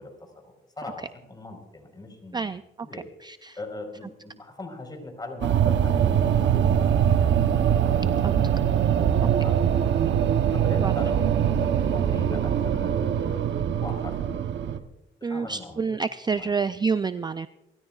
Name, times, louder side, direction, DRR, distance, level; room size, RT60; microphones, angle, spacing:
voice 1, 0.0-2.5 2.8-3.1 3.6-7.0 8.2-11.2 11.5-14.9 15.2-16.0 16.2-16.5, left 2 dB, 20° left, 4 dB, 4.4 m, -40 dB
voice 2, 2.9-3.6 8.2-8.4 10.8-10.9 15.2-17.5, right 5 dB, 20° right, 13 dB, 0.4 m, -28 dB
sound 1, 5.4-14.8, right 9 dB, 65° right, 0.9 m, -22 dB
28.5 x 13.5 x 2.4 m, 0.93 s
cardioid pair, 90°, 20 cm